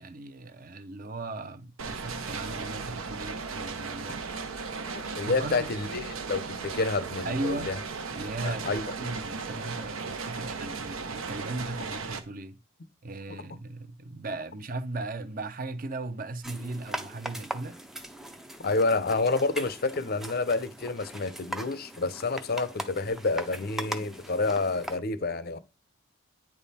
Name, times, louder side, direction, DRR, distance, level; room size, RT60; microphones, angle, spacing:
voice 1, 0.0-4.3 5.3-5.9 7.2-7.7 8.1-12.6 13.0-17.8, right 2 dB, 40° right, 0.7 m, -37 dB
sound 1, 1.8-12.2, right 4 dB, 80° right, 0.9 m, -36 dB
voice 2, 4.9-7.8 8.4-8.9 13.3-13.4 18.6-25.6, left 3 dB, 50° left, 0.6 m, -29 dB
sound 2, 16.4-25.0, equal, ahead, 0.5 m, -40 dB
9.0 x 3.6 x 4.2 m
head